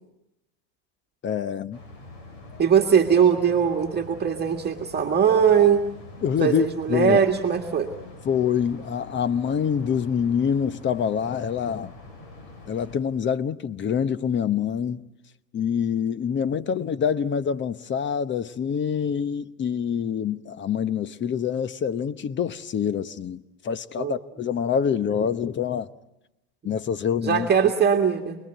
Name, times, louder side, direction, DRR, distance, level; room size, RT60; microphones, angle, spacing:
voice 1, 1.2-1.8 6.2-7.2 8.2-11.9 12.7-15.0 15.5-25.9 26.6-27.5, left 7 dB, 30° left, 1.0 m, -26 dB
sound 1, 1.7-13.0, left 2 dB, 70° left, 7.7 m, -45 dB
voice 2, 2.6-5.8 6.4-7.9 24.0-24.1 27.2-28.4, right 7 dB, 25° right, 2.0 m, -20 dB
29.5 x 21.0 x 9.2 m
supercardioid pair, 110°, 38 cm